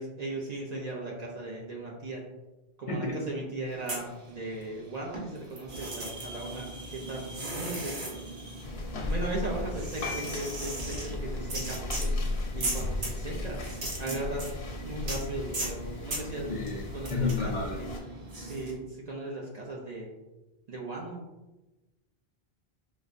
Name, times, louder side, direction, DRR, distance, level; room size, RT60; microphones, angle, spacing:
voice 1, 0.0-2.2 2.8-8.1 9.0-12.1 12.5-13.6 14.0-14.5 14.8-16.6 16.9-17.9 18.4-20.1 20.7-21.2, right 2 dB, 50° right, -2 dB, 0.6 m, -37 dB
voice 2, 2.9-3.2 16.5-16.8 17.1-17.8, left 3 dB, 55° left, 0 dB, 0.6 m, -30 dB
sound 1, 3.7-4.8 5.1-18.7, right 2 dB, 85° right, 1.1 m, -38 dB
sound 2, 8.6-18.0, left 2 dB, 90° left, 0.9 m, -36 dB
4.7 x 2.1 x 2.5 m, 1.1 s
omnidirectional pair, 1.0 m